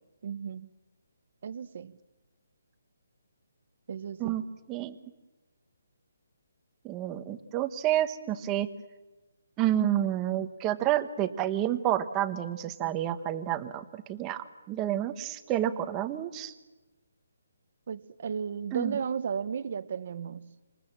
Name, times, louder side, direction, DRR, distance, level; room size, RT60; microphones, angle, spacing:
voice 1, 0.2-0.7 1.4-1.9 3.9-4.4 17.9-20.6, right 7 dB, 40° right, 12 dB, 1.2 m, -34 dB
voice 2, 6.8-8.7 9.6-16.5 18.7-19.0, right 12 dB, 15° right, 9 dB, 1.3 m, -29 dB
29.0 x 27.0 x 7.5 m, 1.1 s
hypercardioid pair, 175°, 0 cm